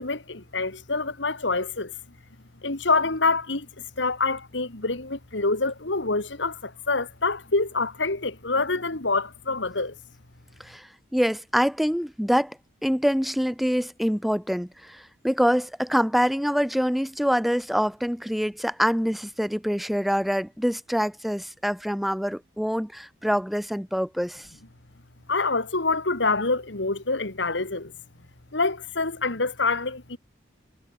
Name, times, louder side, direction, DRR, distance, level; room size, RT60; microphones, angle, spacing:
voice 1, 0.0-1.9 2.6-9.9 25.3-27.9 28.5-30.2, left 3 dB, 75° left, 2.3 m, -26 dB
voice 2, 10.6-24.5, equal, ahead, 0.7 m, -25 dB
head